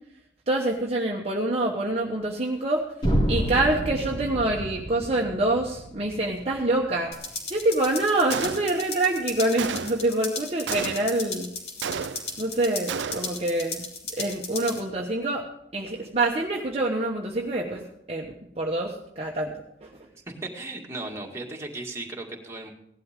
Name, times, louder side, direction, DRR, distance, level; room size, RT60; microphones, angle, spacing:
voice 1, 0.5-2.8 3.3-7.1 7.5-11.5 12.4-13.8 14.1-15.4 15.7-19.5 19.8-19.9, right 2 dB, 35° right, -1 dB, 1.1 m, -26 dB
sound 1, 3.0-7.0, equal, 25° left, 3.1 m, -29 dB
sound 2, 7.1-14.8, left 4 dB, 60° left, 3.1 m, -36 dB
Gunshot gunfire, 8.3-9.0 9.6-10.2 10.7-11.3 11.8-12.5 12.9-13.5, right 6 dB, 75° right, 0.5 m, -32 dB
voice 2, 20.1-22.7, right 2 dB, 15° right, -1 dB, 2.1 m, -36 dB
17.0 x 11.5 x 3.7 m, 0.78 s
head